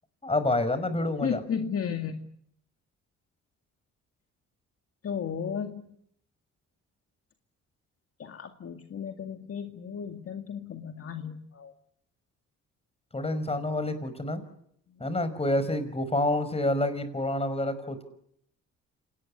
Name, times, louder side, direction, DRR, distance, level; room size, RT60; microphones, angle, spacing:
voice 1, 0.2-1.4 13.1-14.4 15.0-18.0, left 1 dB, 20° left, 12 dB, 5.4 m, -28 dB
voice 2, 1.2-2.3 5.0-5.8 8.2-11.7, left 7 dB, 50° left, 6 dB, 2.1 m, -34 dB
27.5 x 19.5 x 9.9 m, 0.73 s
cardioid pair, 90°, 30 cm